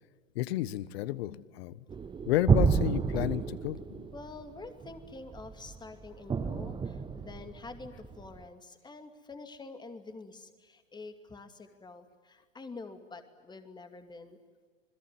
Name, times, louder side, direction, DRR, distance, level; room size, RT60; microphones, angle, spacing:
voice 1, 0.3-1.8 2.3-4.1, left 14 dB, 50° left, 18 dB, 1.4 m, -31 dB
sound 1, 1.9-8.4, right 5 dB, 10° right, 1.1 m, -30 dB
voice 2, 4.1-14.4, left 3 dB, 10° left, 8 dB, 2.5 m, -47 dB
27.5 x 21.5 x 9.5 m, 1.5 s
hypercardioid pair, 110°, 39 cm